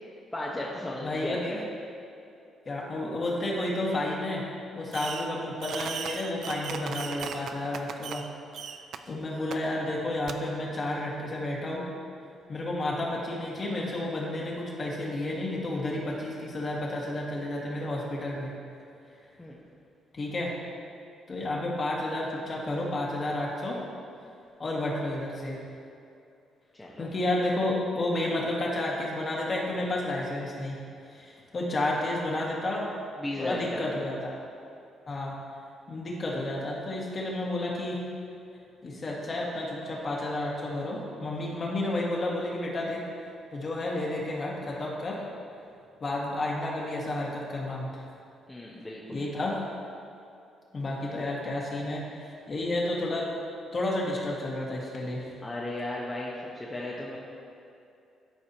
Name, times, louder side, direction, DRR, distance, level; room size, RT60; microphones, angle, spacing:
voice 1, 0.3-1.6 19.4-19.6 26.7-27.1 33.2-34.0 41.5-41.7 48.5-49.2 55.4-57.2, left 1 dB, 15° left, -5 dB, 1.0 m, -35 dB
voice 2, 1.0-1.4 2.7-4.4 4.7-8.3 9.1-11.8 12.5-18.5 20.1-20.6 21.3-23.8 24.6-25.7 27.0-30.8 31.1-32.9 33.4-34.4 35.1-35.4 35.9-38.0 38.8-43.0 43.5-45.2 46.0-48.0 49.1-49.6 50.7-53.3 53.7-55.3, left 1 dB, 40° left, -3 dB, 1.8 m, -31 dB
Fireworks, 4.9-5.3 5.6-8.3 8.5-9.0 9.5-9.6 10.3-10.4, right 7 dB, 70° right, 0.4 m, -37 dB
13.0 x 4.8 x 2.9 m, 2.6 s
cardioid pair, 90°, 0 cm